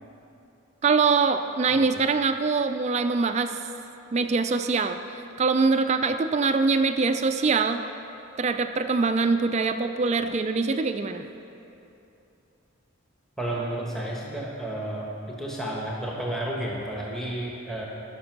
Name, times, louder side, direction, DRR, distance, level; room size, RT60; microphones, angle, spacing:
voice 1, 0.8-3.5 4.1-7.8 8.4-11.3, right 4 dB, 30° right, 8 dB, 0.3 m, -23 dB
voice 2, 1.7-2.0 13.4-17.9, right 1 dB, ahead, -3 dB, 1.1 m, -32 dB
14.0 x 5.9 x 6.0 m, 2.8 s
head